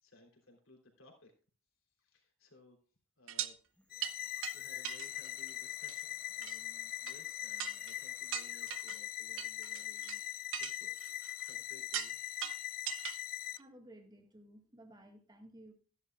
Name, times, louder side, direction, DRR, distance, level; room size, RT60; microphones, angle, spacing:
voice 1, 0.0-1.3 2.0-2.8 3.2-3.6 4.5-11.1 11.5-12.2, left 2 dB, 70° left, 1 dB, 3.4 m, -60 dB
sound 1, 3.3-3.5 4.0-4.1 4.4-4.5 4.8-5.5 5.8-6.0 6.4-6.6 7.1-7.2 7.6-7.9 8.3-9.0 9.4-10.2 10.5-11.5 11.9-12.1 12.4-13.2 13.6-13.7, right 11 dB, 65° right, 0.7 m, -40 dB
sound 2, 3.6-8.9, left 1 dB, 5° left, 1.2 m, -63 dB
sound 3, 3.9-13.6, left 14 dB, 45° left, 0.4 m, -41 dB
voice 2, 13.5-15.7, right 1 dB, 20° right, 4 dB, 1.7 m, -56 dB
14.0 x 11.0 x 2.4 m, 0.40 s
head